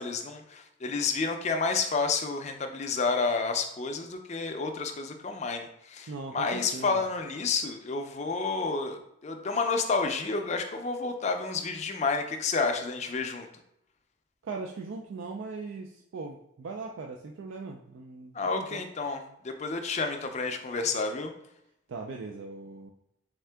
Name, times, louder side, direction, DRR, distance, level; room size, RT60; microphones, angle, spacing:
voice 1, 0.0-13.5 18.3-21.3, left 4 dB, 35° left, 5 dB, 0.4 m, -30 dB
voice 2, 6.1-7.0 14.4-18.8 21.9-22.9, right 4 dB, 65° right, 1 dB, 0.4 m, -39 dB
3.7 x 3.5 x 3.4 m, 0.80 s
head